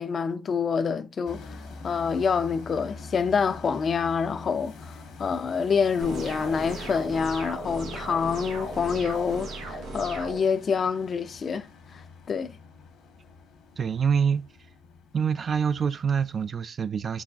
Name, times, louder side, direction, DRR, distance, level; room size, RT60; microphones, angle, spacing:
voice 1, 0.0-1.6 1.8-12.6, left 6 dB, 50° left, 0.4 m, -27 dB
sound 1, 1.2-16.5, left 3 dB, 80° left, 1.2 m, -45 dB
sound 2, 6.0-10.4, right 2 dB, 85° right, 0.9 m, -37 dB
voice 2, 13.8-14.5 15.1-17.2, right 6 dB, 45° right, 0.3 m, -26 dB
4.7 x 4.0 x 2.3 m
cardioid pair, 90°, 0 cm